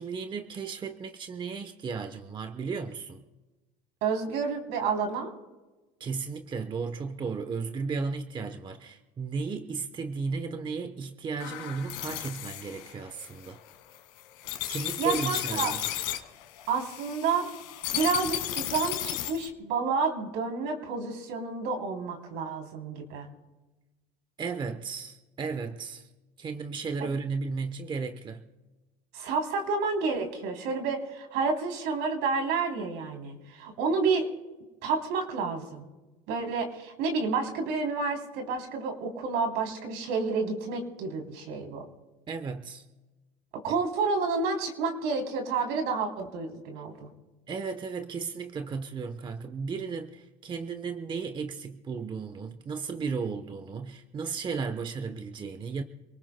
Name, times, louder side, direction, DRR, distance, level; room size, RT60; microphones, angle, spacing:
voice 1, 0.0-3.2 6.0-13.6 14.7-15.8 24.4-26.1 26.4-28.4 42.3-42.8 47.5-55.8, right 5 dB, 25° right, 0.9 m, -34 dB
voice 2, 4.0-5.3 15.0-15.7 16.7-17.5 17.9-23.3 27.0-27.1 29.1-34.3 34.8-35.9 36.3-41.8 43.6-47.1, right 4 dB, 70° right, 3.3 m, -30 dB
sound 1, 11.4-19.5, left 13 dB, 80° left, 1.9 m, -34 dB
27.0 x 19.0 x 2.2 m
supercardioid pair, 115°, 18 cm